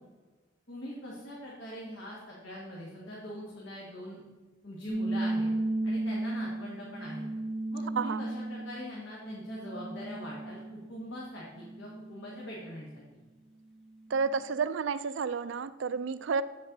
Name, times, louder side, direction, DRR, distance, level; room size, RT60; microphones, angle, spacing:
voice 1, 0.7-4.2 4.6-5.5 5.8-7.2 7.7-12.9, left 1 dB, 85° left, -5 dB, 1.7 m, -42 dB
sound 1, 4.9-10.9 11.4-12.7, right 2 dB, ahead, 0.8 m, -35 dB
voice 2, 14.1-16.4, right 5 dB, 75° right, 15 dB, 0.4 m, -31 dB
7.8 x 7.4 x 4.0 m, 1.3 s
head